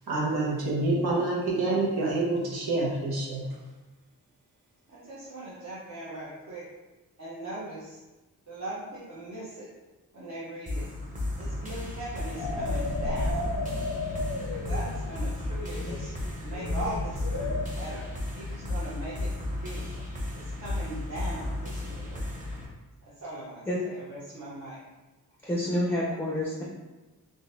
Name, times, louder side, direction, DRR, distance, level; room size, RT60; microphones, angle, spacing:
voice 1, 0.1-3.4, right 2 dB, 80° right, -5 dB, 1.1 m, -27 dB
voice 2, 4.9-6.6 7.2-8.0 8.5-9.7 10.1-10.8 11.4-13.4 14.5-16.1 16.4-18.0 18.3-19.3 19.6-19.8 20.3-22.2 23.2-24.8, right 1 dB, 50° right, -9 dB, 0.8 m, -40 dB
sound 1, 10.7-22.7, left 2 dB, 20° right, 0.9 m, -34 dB
sound 2, 12.4-15.3 15.6-17.7, left 2 dB, 60° left, 0.5 m, -33 dB
voice 3, 25.4-26.6, left 1 dB, 5° left, -4 dB, 0.5 m, -28 dB
3.9 x 2.5 x 2.6 m, 1.1 s
wide cardioid pair, 85°, 37 cm